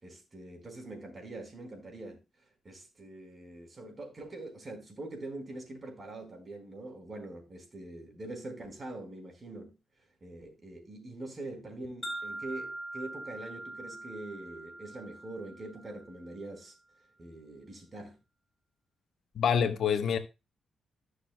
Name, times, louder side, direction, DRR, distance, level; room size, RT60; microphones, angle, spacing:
voice 1, 0.0-2.2 2.6-9.7 10.2-16.7 17.2-18.2, right 2 dB, 35° right, 4.4 m, -44 dB
Wind chime, 12.0-16.3, right 1 dB, 15° left, 2.1 m, -43 dB
voice 2, 19.3-20.2, left 7 dB, 75° left, 1.0 m, -26 dB
15.0 x 6.4 x 2.2 m
cardioid pair, 75°, 0 cm